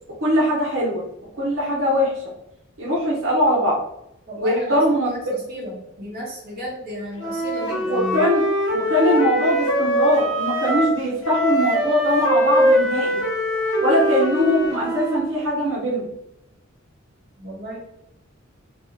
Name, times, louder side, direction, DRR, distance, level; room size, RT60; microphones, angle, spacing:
voice 1, 0.2-1.0 1.4-2.1 2.8-3.8 4.4-5.1 7.9-8.4 8.7-13.2 13.8-16.1, equal, 85° right, -5 dB, 0.8 m, -21 dB
voice 2, 4.3-8.3 17.4-17.8, right 1 dB, 50° right, -5 dB, 1.1 m, -33 dB
Wind instrument woodwind instrument, 7.2-11.0 11.2-15.2, equal, 90° left, 1.0 m, -22 dB
2.9 x 2.3 x 3.1 m, 0.82 s
head